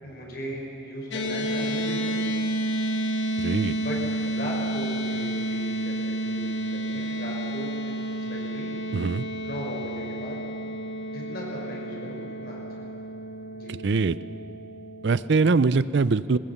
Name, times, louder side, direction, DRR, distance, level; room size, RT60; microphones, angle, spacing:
voice 1, 0.0-2.5 3.8-8.0 8.3-8.7 9.4-10.4 11.1-12.9 13.5-13.8, equal, 55° left, -1 dB, 5.5 m, -37 dB
sound 1, 1.1-15.5, right 1 dB, 90° left, 1.9 m, -31 dB
voice 2, 3.4-3.7 8.9-9.3 13.7-14.2 15.0-16.4, right 4 dB, 75° right, 17 dB, 0.5 m, -22 dB
22.0 x 20.0 x 7.2 m, 2.7 s
head